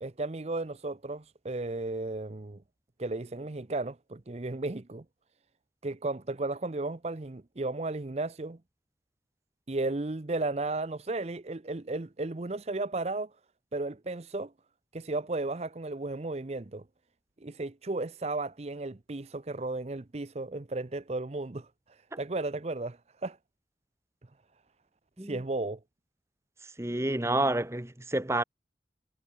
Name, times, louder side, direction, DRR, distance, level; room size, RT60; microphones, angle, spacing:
voice 1, 0.0-2.6 3.0-5.0 5.8-8.6 9.7-13.3 13.7-14.5 14.9-16.8 17.4-23.4 25.2-25.8, right 2 dB, 35° right, 0.7 m, -34 dB
voice 2, 26.8-28.4, right 1 dB, 15° right, 1.2 m, -29 dB
head